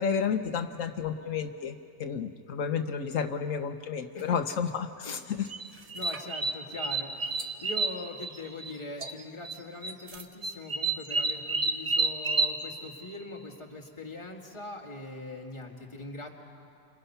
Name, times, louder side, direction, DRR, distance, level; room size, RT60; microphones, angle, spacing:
voice 1, 0.0-1.7 2.0-5.5, left 6 dB, 80° left, 6 dB, 1.2 m, -31 dB
sound 1, 5.5-8.7 9.0-9.6 9.8-12.6, right 3 dB, 35° right, 0.8 m, -30 dB
voice 2, 5.7-16.3, left 2 dB, 20° left, -1 dB, 2.2 m, -42 dB
29.5 x 25.5 x 5.7 m, 2.5 s
omnidirectional pair, 1.3 m